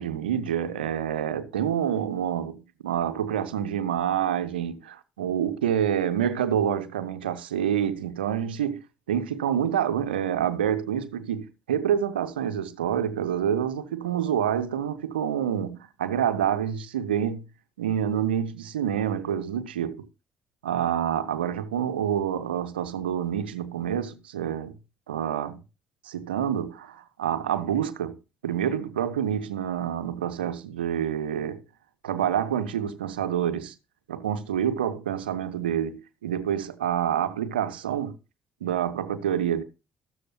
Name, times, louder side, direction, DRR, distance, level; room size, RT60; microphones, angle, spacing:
voice 1, 0.0-17.4 17.8-20.1 20.6-24.7 25.1-25.6 26.0-28.2 28.4-31.6 32.0-33.7 34.1-38.2 38.6-39.6, right 9 dB, 80° right, 0.6 m, -27 dB
13.5 x 12.5 x 2.2 m
figure-of-eight pair, 45°, 5 cm